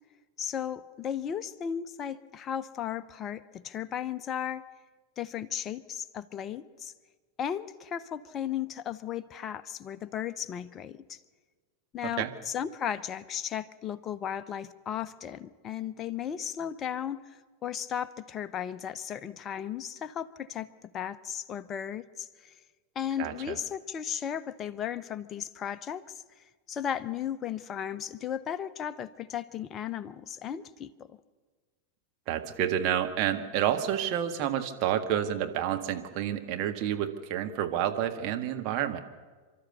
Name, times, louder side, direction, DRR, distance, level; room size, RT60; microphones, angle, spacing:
voice 1, 0.4-4.6 5.2-6.9 7.4-11.2 11.9-22.6 22.9-31.2, left 9 dB, 30° left, 14 dB, 0.8 m, -35 dB
voice 2, 23.2-23.6 32.3-39.0, right 10 dB, 40° right, 5 dB, 1.8 m, -29 dB
29.5 x 13.0 x 6.9 m, 1.5 s
figure-of-eight pair, 90°, 0 cm